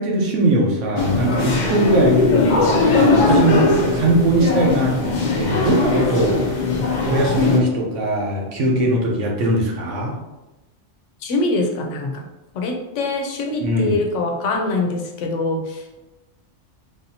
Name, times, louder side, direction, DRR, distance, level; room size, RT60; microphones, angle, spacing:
voice 1, 0.0-6.4 7.0-10.2 13.6-14.0, right 1 dB, 85° right, -1 dB, 1.2 m, -20 dB
sound 1, 1.0-7.6, left 3 dB, 60° left, 0.5 m, -19 dB
voice 2, 11.2-12.2 12.5-15.8, left 2 dB, 90° left, 2 dB, 0.9 m, -23 dB
3.7 x 2.7 x 2.7 m, 1.0 s
omnidirectional pair, 1.2 m